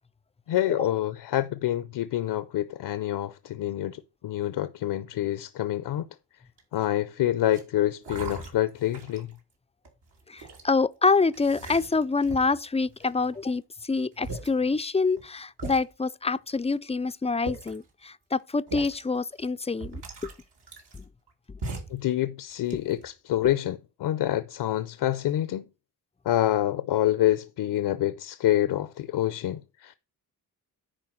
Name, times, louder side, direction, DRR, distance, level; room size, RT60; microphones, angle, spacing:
voice 1, 0.5-6.0 6.7-9.3 21.9-25.6 26.2-30.0, left 13 dB, 80° left, 0.7 m, -27 dB
sound 1, 6.6-7.0 7.5-7.6 8.0-9.3 9.8-10.6 11.3-12.6 13.0-13.5 14.0-14.1 14.2-14.5 15.2-15.3 15.6-15.8 16.7-16.8 17.3-17.8 18.7-19.0 19.4-19.5 19.8-21.3 21.6-22.0 22.5-23.1, right 2 dB, 80° right, 3.1 m, -39 dB
voice 2, 10.3-20.0 20.9-21.0, left 4 dB, 15° left, 0.4 m, -26 dB
10.0 x 4.4 x 6.2 m
cardioid pair, 90°, 40 cm